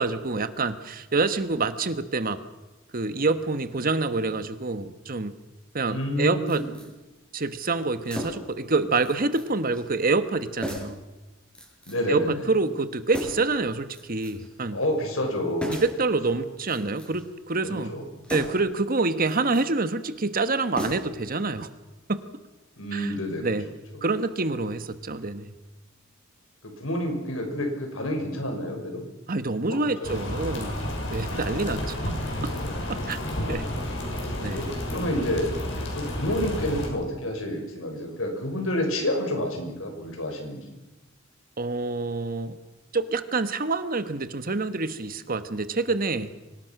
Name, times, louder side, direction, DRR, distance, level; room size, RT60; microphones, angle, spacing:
voice 1, 0.0-2.4 2.9-5.3 5.7-6.6 7.3-11.0 12.1-14.8 15.7-17.9 18.3-21.7 22.1-22.2 22.9-23.1 23.4-23.6 24.0-25.5 29.3-32.2 32.9-33.2 33.5-33.6 34.4-34.7 41.6-42.6 42.9-46.3, right 3 dB, 45° right, 11 dB, 1.3 m, -27 dB
voice 2, 5.8-6.7 11.9-12.5 14.7-15.8 17.6-18.5 22.8-23.5 26.6-29.1 29.7-30.1 31.2-31.7 31.9-32.0 33.2-33.6 34.5-35.6 35.9-40.8, left 1 dB, 80° left, 3 dB, 6.0 m, -29 dB
sound 1, 6.5-6.9 8.0-8.6 9.0-9.5 9.7-9.9 10.6-11.0 11.5-12.1 13.1-13.5 13.9-14.5 15.6-16.0 16.6-17.3 18.2-18.7 19.2-19.7 20.7-21.3 21.6-21.7, equal, 5° left, 5.5 m, -36 dB
sound 2, 30.0-36.9, left 1 dB, 65° left, 6.7 m, -31 dB
24.5 x 19.5 x 6.1 m, 1.1 s
head